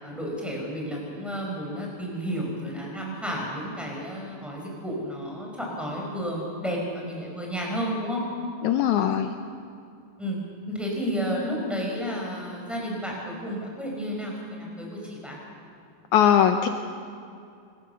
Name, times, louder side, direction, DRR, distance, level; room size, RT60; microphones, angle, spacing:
voice 1, 0.0-8.2 10.2-10.4 10.7-15.4, equal, ahead, -2 dB, 4.8 m, -32 dB
voice 2, 8.6-9.4 16.1-16.7, left 9 dB, 85° left, 7 dB, 1.7 m, -20 dB
27.0 x 14.0 x 6.9 m, 2.4 s
omnidirectional pair, 4.2 m